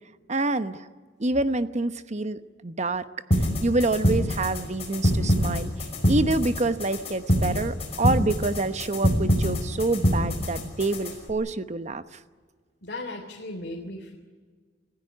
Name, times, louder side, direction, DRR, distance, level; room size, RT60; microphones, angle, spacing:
voice 1, 0.3-0.9 1.2-3.0 3.6-5.7 6.1-12.0, right 2 dB, 40° right, 11 dB, 1.0 m, -27 dB
sound 1, 3.3-11.3, equal, 35° left, 5.7 m, -25 dB
voice 2, 12.8-14.2, left 2 dB, 60° left, 0 dB, 3.3 m, -36 dB
27.0 x 15.5 x 9.6 m, 1.5 s
head